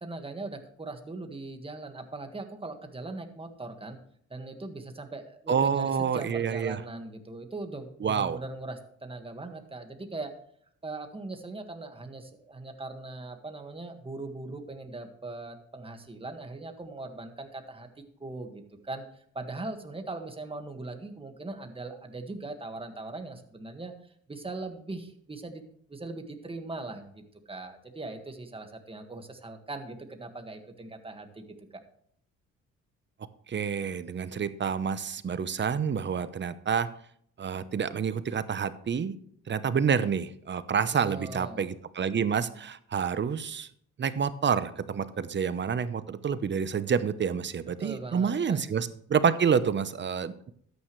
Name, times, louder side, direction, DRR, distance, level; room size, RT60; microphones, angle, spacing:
voice 1, 0.0-4.0 4.3-10.3 10.8-17.9 18.2-19.0 19.3-23.9 24.3-25.6 25.9-31.4 40.9-41.6 47.8-48.6, right 2 dB, 20° right, 6 dB, 1.7 m, -40 dB
voice 2, 5.5-6.8 8.0-8.4 33.5-36.9 37.4-39.1 39.5-43.7 44.0-50.5, right 7 dB, 40° right, 14 dB, 0.8 m, -28 dB
13.0 x 9.6 x 3.2 m, 0.65 s
cardioid pair, 90°, 30 cm